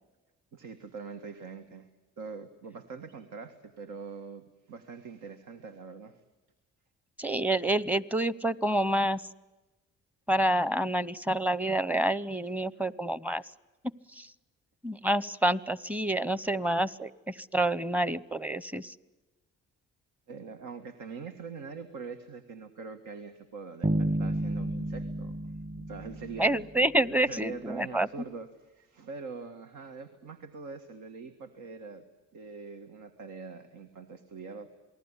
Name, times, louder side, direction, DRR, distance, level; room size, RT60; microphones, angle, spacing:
voice 1, 0.5-1.9 2.2-6.2 12.5-12.7 20.3-25.4 25.8-26.7 27.3-32.0 32.3-34.8, right 5 dB, 80° right, 7 dB, 1.8 m, -43 dB
voice 2, 7.2-9.2 10.3-13.4 14.2-14.3 14.8-18.9 26.4-28.1, right 1 dB, 5° right, 18 dB, 0.8 m, -28 dB
sound 1, 23.8-26.9, right 1 dB, 30° right, 1.9 m, -31 dB
28.0 x 19.5 x 9.9 m, 1.1 s
cardioid pair, 90°, 30 cm